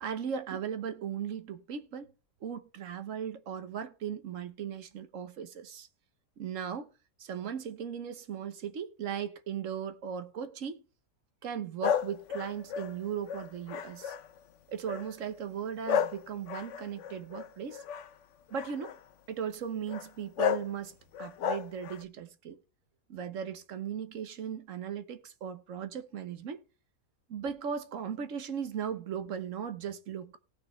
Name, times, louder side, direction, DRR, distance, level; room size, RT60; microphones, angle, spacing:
voice 1, 0.0-2.1 2.4-5.9 6.4-6.9 7.2-10.8 11.4-14.1 14.7-17.8 18.5-19.0 19.3-22.6 23.1-26.6 27.3-30.4, right 8 dB, 60° right, 1.3 m, -37 dB
sound 1, 11.8-14.4 14.9-15.2 15.8-18.1 18.5-19.0 19.9-20.1 20.4-20.7 21.1-22.0, left 8 dB, 60° left, 0.9 m, -32 dB
18.0 x 6.4 x 3.2 m
omnidirectional pair, 1.6 m